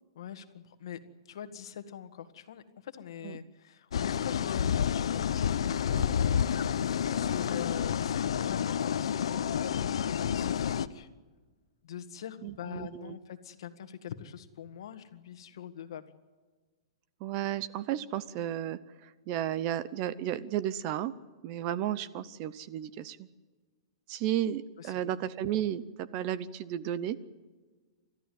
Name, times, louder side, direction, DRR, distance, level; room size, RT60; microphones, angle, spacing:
voice 1, 0.2-1.0 1.3-6.1 6.9-9.6 10.3-11.1 11.8-16.1 24.8-25.1, left 9 dB, 60° left, 10 dB, 1.7 m, -43 dB
sound 1, 3.9-10.9, left 8 dB, 80° left, 0.9 m, -29 dB
voice 2, 6.0-6.4 12.4-13.2 17.2-21.1 21.4-23.3 24.1-27.2, right 11 dB, 30° right, 16 dB, 0.6 m, -33 dB
29.5 x 13.5 x 9.4 m, 1.4 s
hypercardioid pair, 175°, 3 cm